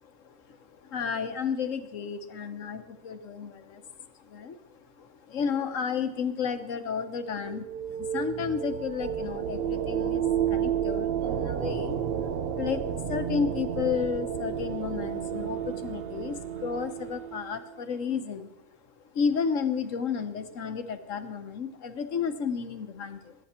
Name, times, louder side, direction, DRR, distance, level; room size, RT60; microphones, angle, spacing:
voice 1, 0.2-0.6 0.8-3.8 4.2-4.6 5.0-7.7 8.0-18.5 19.1-23.3, left 6 dB, 75° left, 9 dB, 1.4 m, -32 dB
sound 1, 7.2-17.8, right 8 dB, 55° right, 0.9 m, -31 dB
21.0 x 9.6 x 4.4 m, 0.94 s
omnidirectional pair, 1.4 m